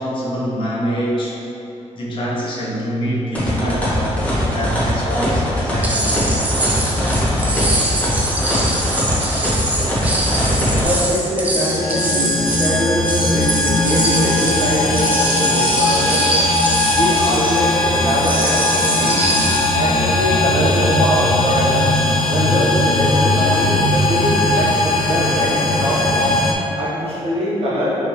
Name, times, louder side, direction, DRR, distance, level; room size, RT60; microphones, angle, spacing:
voice 1, 0.0-1.4 1.9-6.3, equal, 45° left, -6 dB, 0.8 m, -25 dB
sound 1, 3.3-10.8, equal, 10° left, 0.8 m, -20 dB
sound 2, 5.8-19.8, right 1 dB, 15° right, 0.4 m, -23 dB
voice 2, 10.8-16.3 16.9-19.2 19.7-21.8 22.2-26.4 26.7-28.0, equal, 50° right, -8 dB, 1.2 m, -22 dB
sound 3, 11.5-26.5, left 2 dB, 80° left, 0.6 m, -18 dB
5.7 x 2.8 x 3.1 m, 2.9 s
wide cardioid pair, 175°, 12 cm